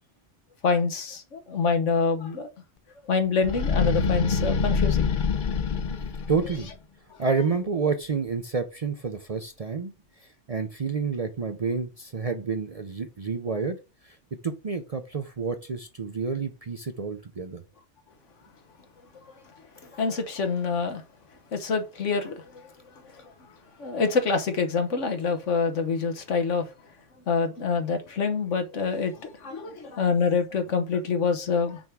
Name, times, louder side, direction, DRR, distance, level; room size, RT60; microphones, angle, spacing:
voice 1, 0.6-2.5 3.1-5.1 20.0-21.0 21.5-22.3 23.8-26.6 27.3-31.8, left 5 dB, 75° left, 1.5 m, -26 dB
sound 1, 3.4-6.7, left 5 dB, 50° left, 0.8 m, -25 dB
voice 2, 6.3-6.7 7.2-9.9 10.2-13.8 14.0-14.2 14.4-17.6, right 5 dB, 40° right, 0.5 m, -29 dB
6.3 x 3.6 x 5.9 m
omnidirectional pair, 1.3 m